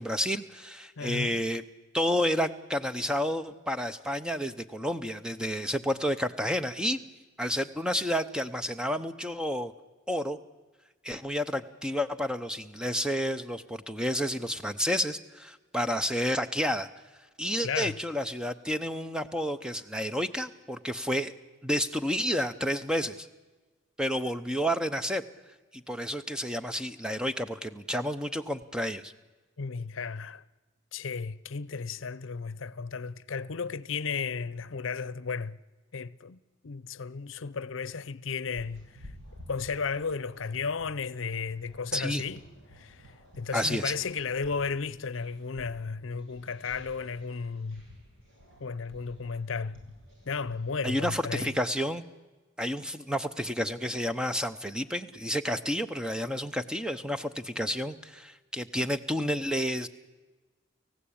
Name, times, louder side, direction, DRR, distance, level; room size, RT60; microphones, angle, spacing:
voice 1, 0.0-1.6 1.9-7.0 7.4-9.7 10.1-10.4 11.0-16.9 17.4-21.3 21.6-23.3 24.0-25.2 25.7-29.1 41.9-42.2 43.5-43.9 50.8-52.0 52.6-59.9, equal, 5° right, 0.7 m, -30 dB
voice 2, 1.0-1.4 17.6-18.0 29.6-30.4 30.9-35.6 35.9-36.4 36.6-39.1 39.5-42.4 42.7-47.8 48.6-49.8 50.3-51.5, left 5 dB, 75° left, 0.6 m, -34 dB
sound 1, 38.4-51.5, equal, 80° right, 7.2 m, -52 dB
30.0 x 15.5 x 8.7 m
head